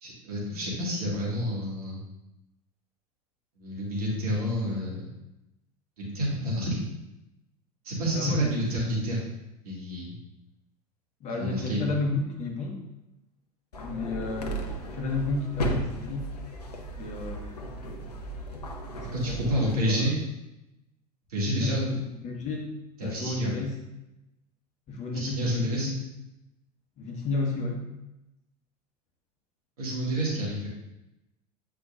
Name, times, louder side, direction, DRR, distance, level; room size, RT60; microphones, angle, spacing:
voice 1, 0.0-2.0 3.6-5.1 6.0-6.8 7.8-9.2 9.6-10.2 11.4-11.8 19.1-20.1 21.3-21.8 23.0-23.5 25.1-25.9 29.8-30.7, equal, 65° right, -4 dB, 2.1 m, -29 dB
voice 2, 8.1-8.6 11.2-12.8 13.8-16.3 17.0-17.4 18.9-20.1 21.6-22.7 23.0-23.7 24.9-25.9 27.0-27.8, left 3 dB, 35° left, -1 dB, 1.4 m, -32 dB
sound 1, 13.7-19.8, right 1 dB, 80° left, 0.8 m, -35 dB
8.4 x 4.5 x 2.6 m, 0.93 s
figure-of-eight pair, 80°, 20 cm